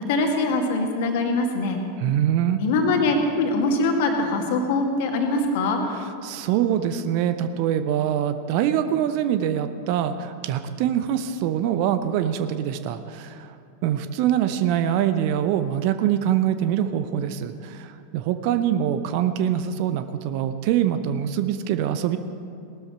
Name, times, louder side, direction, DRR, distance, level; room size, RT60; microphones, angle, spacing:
voice 1, 0.1-1.8 2.6-5.8, left 2 dB, 50° left, 3 dB, 2.0 m, -23 dB
voice 2, 2.0-2.6 6.2-13.5 13.8-22.2, right 10 dB, 45° right, 10 dB, 0.7 m, -24 dB
18.5 x 13.0 x 4.5 m, 2.6 s
figure-of-eight pair, 90°, 0 cm